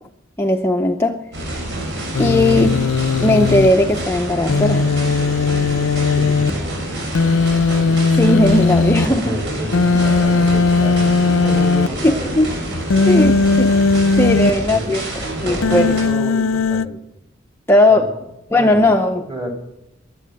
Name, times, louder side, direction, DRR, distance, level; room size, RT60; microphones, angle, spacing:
voice 1, 0.4-1.2 2.2-2.9 3.2-4.9 8.1-9.4 12.0-12.5 13.0-13.8 14.2-15.0 15.4-15.9 17.7-18.1 18.5-19.2, left 1 dB, 10° left, 2 dB, 0.6 m, -17 dB
sound 1, 1.3-16.0, right 1 dB, 55° right, 6.1 m, -27 dB
Human voice, 2.1-3.7 4.5-6.5 7.1-9.1 9.7-11.9 12.9-14.5 15.6-16.9, left 4 dB, 75° left, 0.6 m, -17 dB
voice 2, 6.1-7.0 9.0-12.4 13.1-13.6 14.4-15.0 15.4-17.0 17.9-18.2 18.5-18.9 19.2-19.5, equal, 25° right, 1 dB, 3.0 m, -30 dB
22.0 x 8.5 x 6.5 m, 0.86 s
head